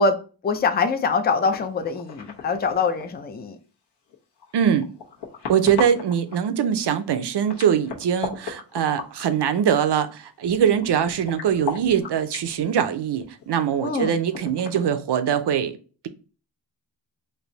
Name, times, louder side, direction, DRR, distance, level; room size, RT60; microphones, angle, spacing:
voice 1, 0.0-3.6 13.8-14.2, left 4 dB, 25° left, 0.4 m, -24 dB
sound 1, 0.5-0.9 1.4-3.3 4.1-6.4 7.0-9.8 10.1-10.2 10.4-12.6 13.2-15.0, left 6 dB, 70° left, 1.0 m, -37 dB
voice 2, 4.5-4.8 5.5-15.8, right 8 dB, 70° right, 0.6 m, -22 dB
3.4 x 2.6 x 3.9 m
wide cardioid pair, 130°, 43 cm